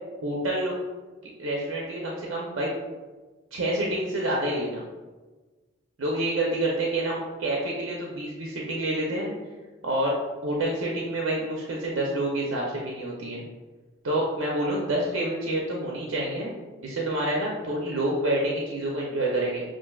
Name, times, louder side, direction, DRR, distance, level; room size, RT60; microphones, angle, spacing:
voice 1, 0.2-0.7 1.4-2.7 3.5-4.8 6.0-9.3 9.8-13.4 14.0-16.5 16.8-19.6, right 1 dB, 85° right, -2 dB, 0.6 m, -28 dB
5.8 x 2.5 x 2.3 m, 1.3 s
head